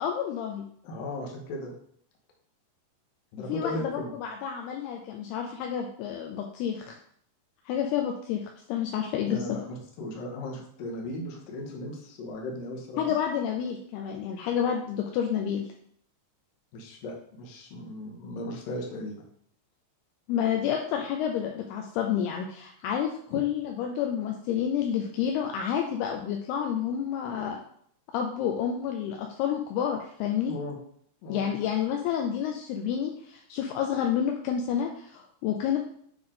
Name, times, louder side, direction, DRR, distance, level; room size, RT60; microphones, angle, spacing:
voice 1, 0.0-0.7 3.5-6.9 7.7-9.6 13.0-15.7 20.3-27.6 28.1-30.5 31.3-35.8, left 8 dB, 85° left, 2 dB, 2.4 m, -29 dB
voice 2, 0.8-1.7 3.3-4.1 9.3-13.1 16.7-19.2 23.3-23.4 30.5-30.8 31.2-31.5, left 1 dB, 65° left, 0 dB, 2.4 m, -36 dB
8.8 x 3.5 x 3.7 m, 0.65 s
omnidirectional pair, 4.9 m